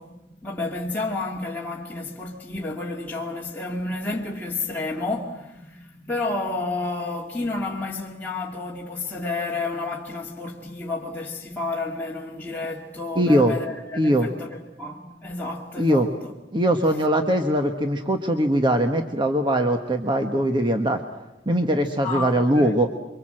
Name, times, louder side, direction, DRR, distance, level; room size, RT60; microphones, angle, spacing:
voice 1, 0.0-16.3 22.0-22.8, left 3 dB, 10° left, 2.1 m, -31 dB
voice 2, 13.1-13.6 13.9-14.3 15.8-16.1 16.5-21.0 21.4-22.9, right 1 dB, 25° right, 1.4 m, -21 dB
28.5 x 24.5 x 7.7 m
head